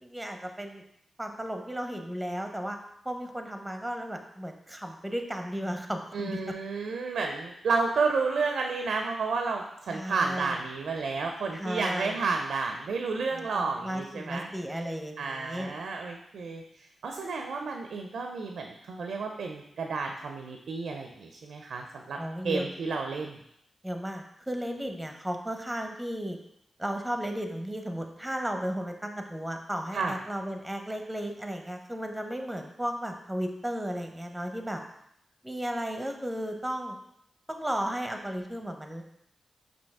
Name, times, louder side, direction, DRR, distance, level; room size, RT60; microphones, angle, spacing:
voice 1, 0.0-0.8 1.2-2.8 3.0-6.5 9.9-10.6 11.5-12.2 13.3-15.7 22.2-22.7 23.8-26.4 26.8-34.8 35.4-37.0 37.5-39.0, equal, 10° right, 4 dB, 0.7 m, -34 dB
voice 2, 6.1-14.5 15.2-16.6 17.0-22.2 22.4-23.4 29.9-30.1, right 4 dB, 80° right, 3 dB, 0.4 m, -31 dB
5.3 x 2.7 x 3.5 m, 0.77 s
supercardioid pair, 45°, 0 cm